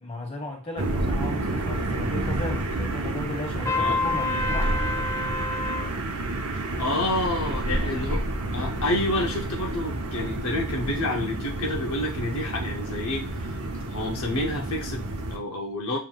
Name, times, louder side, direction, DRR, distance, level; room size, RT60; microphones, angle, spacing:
voice 1, 0.0-4.8, left 1 dB, 30° left, 0 dB, 1.3 m, -35 dB
sound 1, 0.8-15.4, right 2 dB, 75° right, 0.8 m, -29 dB
Trumpet, 3.6-5.9, left 3 dB, 15° left, 0.3 m, -28 dB
voice 2, 6.8-8.2 8.5-13.6 13.9-16.0, left 2 dB, 70° left, 0 dB, 0.7 m, -29 dB
7.2 x 3.0 x 2.3 m, 0.36 s
head